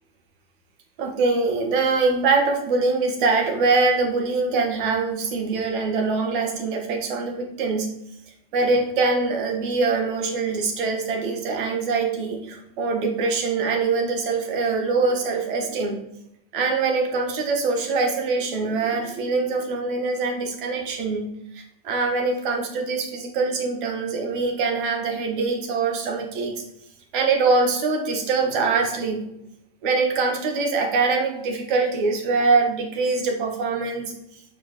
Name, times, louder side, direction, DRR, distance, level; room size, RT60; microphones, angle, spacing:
voice 1, 1.0-7.9 8.5-16.0 16.5-26.5 27.1-29.2 29.8-34.1, right 4 dB, 60° right, 3 dB, 1.6 m, -23 dB
7.0 x 4.8 x 3.2 m, 0.78 s
supercardioid pair, 135°, 29 cm